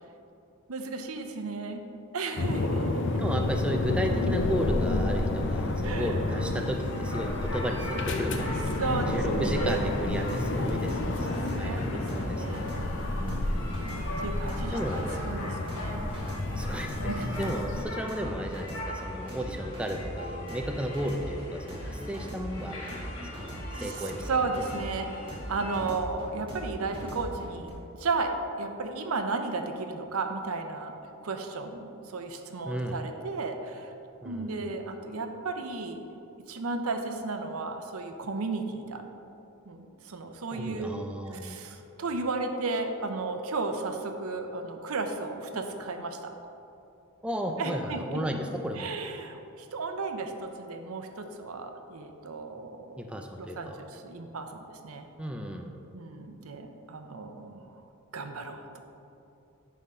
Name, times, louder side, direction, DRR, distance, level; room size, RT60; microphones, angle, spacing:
voice 1, 0.7-1.8 2.1-3.2 5.8-6.4 8.8-9.9 11.5-12.9 13.2-16.0 16.8-17.3 23.7-33.9 34.2-36.0 36.5-39.0 39.7-41.0 41.3-46.3 47.6-48.2 48.8-53.0 53.4-55.1 55.9-57.8 58.1-58.8, right 3 dB, 75° right, 6 dB, 0.7 m, -34 dB
sound 1, 2.4-17.8, left 2 dB, 55° left, 0.6 m, -30 dB
voice 2, 3.2-8.8 9.1-12.7 14.7-15.2 16.6-17.0 17.4-23.0 23.4-23.5 23.7-24.3 32.7-33.0 34.2-34.7 40.5-41.7 47.2-48.9 53.0-53.8 55.2-55.8, equal, 5° right, 3 dB, 0.4 m, -34 dB
sound 2, 6.5-25.8, left 1 dB, 80° left, 1.7 m, -42 dB
sound 3, 9.1-27.7, equal, 25° right, 1.7 m, -39 dB
9.8 x 3.7 x 5.5 m, 2.8 s
head